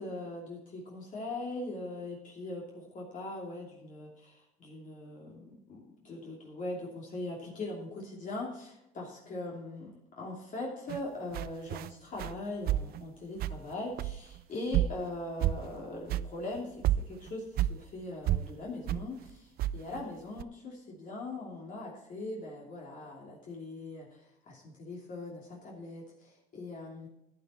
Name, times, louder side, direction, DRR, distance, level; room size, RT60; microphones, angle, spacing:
voice 1, 0.0-27.1, left 2 dB, 50° left, -2 dB, 2.8 m, -41 dB
sound 1, 10.9-11.0 11.3-11.9 12.2-12.4 12.7-13.0 13.4-13.7 14.0-14.4 14.7-15.1 15.4-15.8 16.1-16.3 16.6-16.7 16.8-17.8 18.3-18.5 18.9-19.1 19.6-20.0 20.4-20.5, right 13 dB, 65° right, 0.4 m, -30 dB
11.0 x 9.7 x 4.3 m, 0.87 s
cardioid pair, 110°, 17 cm